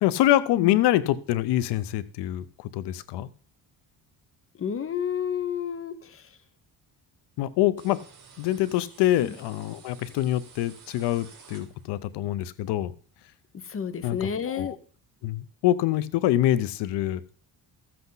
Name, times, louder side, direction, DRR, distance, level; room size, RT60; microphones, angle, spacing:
voice 1, 0.0-2.5 2.7-3.3 7.4-8.0 8.4-12.9 14.0-14.8 15.2-17.2, left 13 dB, 90° left, 16 dB, 0.8 m, -25 dB
voice 2, 4.6-6.3 9.2-9.3 13.6-14.8, left 7 dB, 35° left, 11 dB, 1.0 m, -30 dB
sound 1, 7.8-12.1, right 6 dB, 55° right, 2.8 m, -52 dB
13.5 x 7.8 x 4.0 m, 0.41 s
cardioid pair, 115°, 40 cm